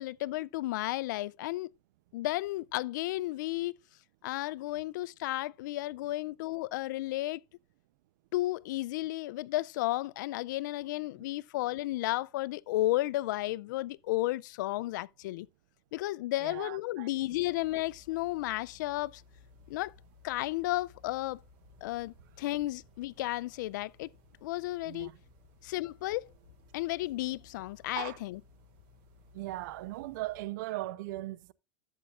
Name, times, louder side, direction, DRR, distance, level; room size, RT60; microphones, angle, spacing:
voice 1, 0.0-1.7 2.1-3.7 4.2-7.4 8.3-15.5 15.9-19.2 19.7-19.9 20.2-21.4 21.8-24.1 24.4-25.1 25.6-26.3 26.7-28.4, left 17 dB, 80° left, 0.5 m, -33 dB
voice 2, 16.4-17.1 24.8-25.2 28.0-28.2 29.3-31.5, right 17 dB, 75° right, 0.7 m, -38 dB
sound 1, 17.2-30.5, left 3 dB, 55° right, 6.2 m, -60 dB
12.5 x 8.2 x 2.5 m
supercardioid pair, 130°, 10 cm